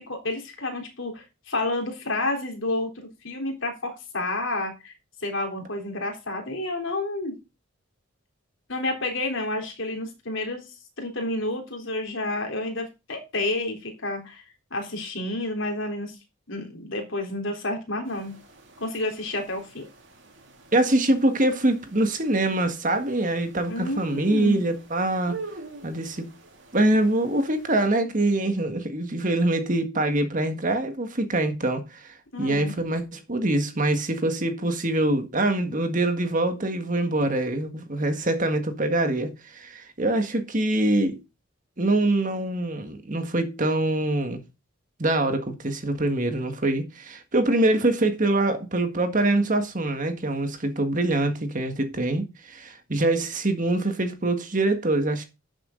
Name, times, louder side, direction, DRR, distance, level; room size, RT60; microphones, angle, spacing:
voice 1, 0.0-2.9 3.2-4.9 5.2-7.3 8.7-10.6 11.0-14.4 14.7-16.2 16.5-18.3 18.8-19.9 23.7-24.6 32.3-32.7, left 2 dB, 65° left, 3.6 m, -30 dB
sound 1, 18.0-27.9, right 3 dB, 60° right, 2.6 m, -46 dB
voice 2, 20.7-25.4 25.8-26.3 26.7-41.2 41.8-44.4 45.0-55.3, right 2 dB, 40° right, 1.7 m, -24 dB
12.0 x 7.4 x 3.9 m
head